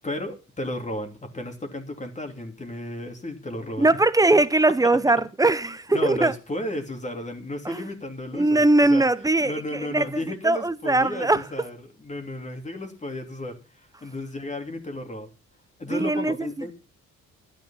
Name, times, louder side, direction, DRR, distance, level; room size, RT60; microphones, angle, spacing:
voice 1, 0.0-4.0 4.8-4.9 5.9-9.1 9.4-15.3 15.8-16.7, left 1 dB, 25° left, 3.1 m, -33 dB
voice 2, 3.8-6.3 7.7-7.8 8.3-10.0 10.4-11.4 15.9-16.5, right 2 dB, 10° right, 0.8 m, -21 dB
12.0 x 10.5 x 5.7 m
cardioid pair, 90°, 30 cm